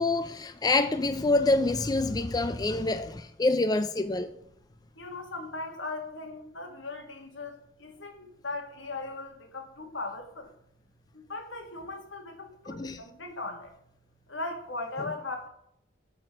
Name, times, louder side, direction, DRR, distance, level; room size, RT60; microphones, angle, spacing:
voice 1, 0.0-4.3 12.7-13.0, left 2 dB, 20° left, 0.4 m, -26 dB
voice 2, 5.0-10.5 11.1-13.7 14.3-15.5, left 3 dB, 85° left, 2.1 m, -38 dB
13.0 x 4.3 x 6.0 m
head